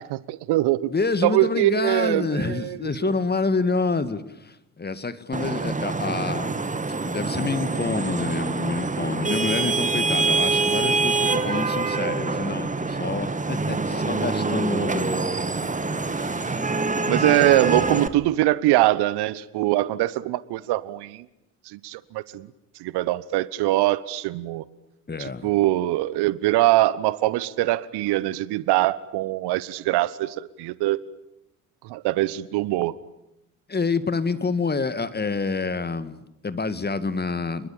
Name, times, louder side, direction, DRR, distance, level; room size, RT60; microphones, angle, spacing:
voice 1, 0.0-0.9 1.2-3.1 17.1-21.2 21.7-22.5 22.8-24.6 25.2-31.0 31.8-32.9, right 16 dB, 60° right, 19 dB, 1.1 m, -23 dB
voice 2, 0.9-6.6 7.0-15.7 16.1-16.7 25.1-25.5 33.7-37.7, left 4 dB, 20° left, 13 dB, 2.0 m, -28 dB
Vehicle horn car horn honking / Traffic noise roadway noise, 5.3-18.1, right 3 dB, 15° right, 2.0 m, -25 dB
29.5 x 21.5 x 8.8 m, 0.85 s
figure-of-eight pair, 50°, 45 cm